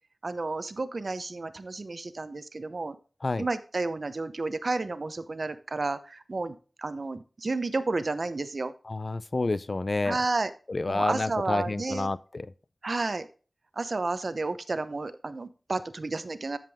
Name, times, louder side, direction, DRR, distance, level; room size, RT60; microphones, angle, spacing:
voice 1, 0.2-3.0 3.4-8.7 10.0-10.5 10.9-12.1 12.8-13.3 13.8-16.6, right 3 dB, 65° right, 0.8 m, -31 dB
voice 2, 8.9-10.2 10.7-12.5, left 2 dB, 55° left, 0.5 m, -29 dB
13.0 x 5.2 x 3.5 m
wide cardioid pair, 60°, 0 cm